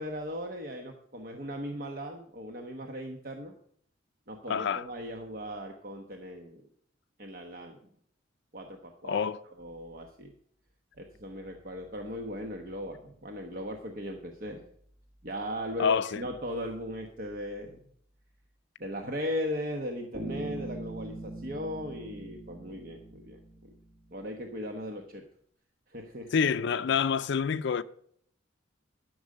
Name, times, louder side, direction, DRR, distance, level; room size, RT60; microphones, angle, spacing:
voice 1, 0.0-3.5 4.3-6.6 7.2-7.8 8.5-10.3 10.9-14.7 15.2-17.8 18.8-23.7 24.1-25.2 25.9-26.3, equal, 50° right, 1.1 m, -38 dB
voice 2, 4.5-4.9 9.1-9.4 15.8-16.2 26.3-27.8, left 6 dB, 65° left, 0.4 m, -27 dB
Bass guitar, 20.1-23.9, right 2 dB, 30° right, 1.9 m, -41 dB
12.0 x 6.5 x 6.5 m
head